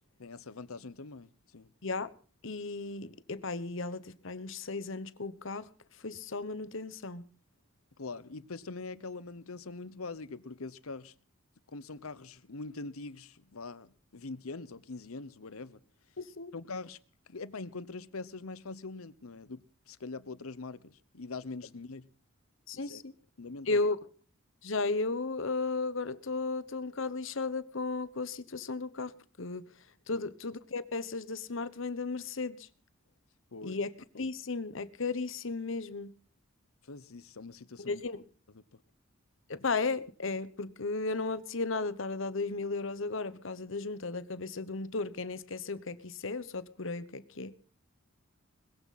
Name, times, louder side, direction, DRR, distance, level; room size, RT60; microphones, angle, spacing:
voice 1, 0.2-1.7 8.0-11.1 11.7-15.8 16.5-17.0 17.3-22.1 22.7-23.0 23.4-23.8 30.1-30.3 33.5-33.8 36.8-38.0 38.5-38.8, left 3 dB, 90° left, 1.0 m, -43 dB
voice 2, 2.4-5.7 6.0-7.2 16.2-16.5 22.7-23.1 23.7-24.0 24.6-29.1 29.4-29.6 30.1-32.7 33.6-36.1 37.8-38.2 39.5-47.5, left 3 dB, 65° left, 1.0 m, -35 dB
21.0 x 15.0 x 4.2 m
head